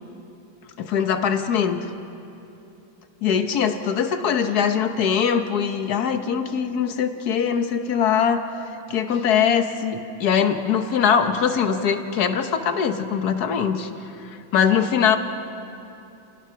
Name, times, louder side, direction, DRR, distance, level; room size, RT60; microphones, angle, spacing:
voice 1, 0.8-1.8 3.2-8.4 8.9-15.2, left 7 dB, 55° left, 7 dB, 1.5 m, -22 dB
29.5 x 17.0 x 5.9 m, 2.8 s
omnidirectional pair, 2.2 m